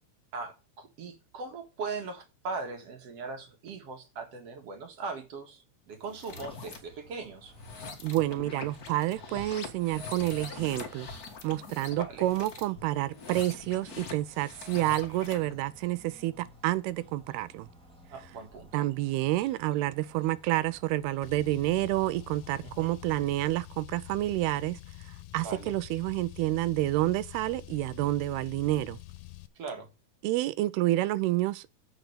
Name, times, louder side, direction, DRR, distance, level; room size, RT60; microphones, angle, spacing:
voice 1, 0.3-7.5 9.3-9.5 12.0-12.3 18.1-18.9 22.6-22.9 25.4-25.7 29.6-29.9, right 4 dB, 50° right, 2.3 m, -39 dB
sound 1, 6.0-6.8 7.5-15.5, left 4 dB, 65° left, 0.8 m, -43 dB
sound 2, 6.3-23.6, equal, ahead, 1.9 m, -56 dB
voice 2, 8.0-11.1 11.4-17.7 18.7-24.8 25.3-29.0 30.2-31.7, right 16 dB, 85° right, 2.6 m, -29 dB
Car, 21.2-29.5, left 17 dB, 85° left, 2.6 m, -47 dB
8.0 x 6.0 x 6.7 m
omnidirectional pair, 4.5 m